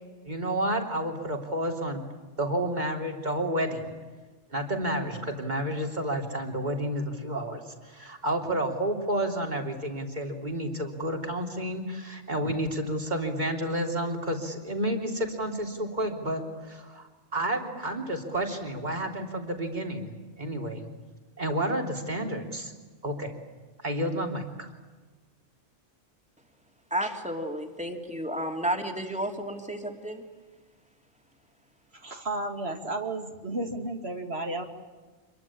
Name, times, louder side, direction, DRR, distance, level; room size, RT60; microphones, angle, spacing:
voice 1, 0.2-2.1 2.4-3.9 4.5-20.9 21.4-22.7 23.0-23.3 23.8-24.7, right 1 dB, 40° right, 3 dB, 3.5 m, -30 dB
voice 2, 26.9-30.2, right 1 dB, 5° right, 3 dB, 3.0 m, -32 dB
voice 3, 31.9-34.7, right 2 dB, 60° right, 4 dB, 2.8 m, -33 dB
26.5 x 22.5 x 8.7 m, 1.3 s
omnidirectional pair, 1.2 m